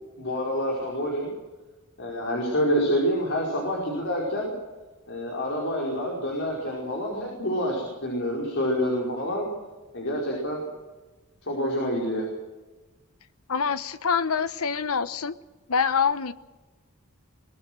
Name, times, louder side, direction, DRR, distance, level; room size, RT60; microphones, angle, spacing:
voice 1, 0.2-1.3 2.0-4.5 5.1-9.5 9.9-10.7 11.4-12.2, equal, 60° left, -3 dB, 5.0 m, -27 dB
voice 2, 13.5-15.3 15.7-16.3, left 6 dB, 80° left, 13 dB, 0.9 m, -25 dB
23.0 x 20.0 x 6.4 m, 1.2 s
head